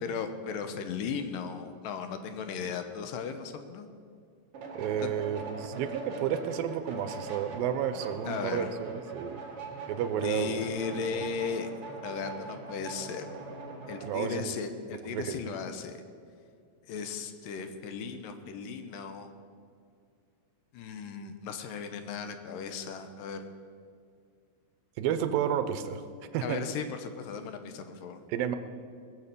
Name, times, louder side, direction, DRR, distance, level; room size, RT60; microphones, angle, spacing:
voice 1, 0.0-3.9 5.0-5.1 8.3-8.7 10.2-11.7 12.0-13.3 13.9-16.0 16.8-19.3 20.7-23.4 26.4-28.2, left 6 dB, 75° left, 8 dB, 2.5 m, -36 dB
sound 1, 4.5-14.2, right 3 dB, 45° right, 2.4 m, -41 dB
voice 2, 4.8-9.4 9.9-10.6 11.1-11.2 14.0-14.5 14.9-15.4 25.0-26.0 26.3-26.6 28.3-28.6, right 9 dB, 85° right, 10 dB, 2.5 m, -31 dB
20.5 x 7.4 x 6.8 m, 2.2 s
omnidirectional pair, 4.0 m